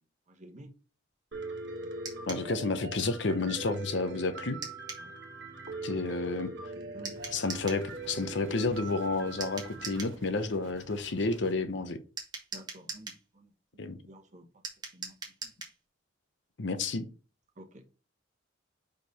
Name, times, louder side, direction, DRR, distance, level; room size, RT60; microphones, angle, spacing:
voice 1, 0.3-0.7 1.5-2.3 5.0-5.1 5.8-6.1 6.5-7.2 12.5-14.5 14.9-15.2 15.4-15.5 17.6-17.8, right 1 dB, 40° right, 1.1 m, -53 dB
Piano, 1.3-10.0, right 2 dB, 60° right, 1.4 m, -42 dB
sound 1, 2.0-2.5 4.6-5.1 7.0-7.8 9.4-10.2 12.2-13.2 14.6-15.8, right 4 dB, 20° right, 1.5 m, -41 dB
voice 2, 2.3-4.6 5.8-6.5 7.3-12.0 13.8-14.0 16.6-17.0, left 3 dB, 65° left, 0.8 m, -31 dB
sound 2, 7.1-11.5, right 2 dB, 80° right, 1.4 m, -53 dB
5.0 x 4.6 x 4.0 m
head